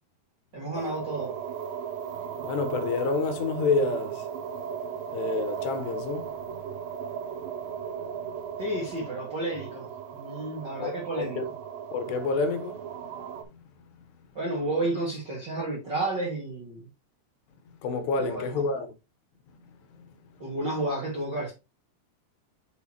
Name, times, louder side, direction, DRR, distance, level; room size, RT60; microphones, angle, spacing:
voice 1, 0.5-1.4 8.6-11.4 14.3-16.9 18.2-18.5 20.4-21.5, right 2 dB, 45° right, 1.6 m, -31 dB
sound 1, 0.7-13.4, right 8 dB, 75° right, 2.2 m, -37 dB
voice 2, 2.4-4.3 4.8-6.6 7.4-7.5 8.2-8.3 10.8-11.5 11.9-13.1 13.5-13.6 17.8-18.9 19.9-20.0, left 3 dB, 80° left, 3.1 m, -29 dB
6.6 x 6.4 x 2.9 m
omnidirectional pair, 4.9 m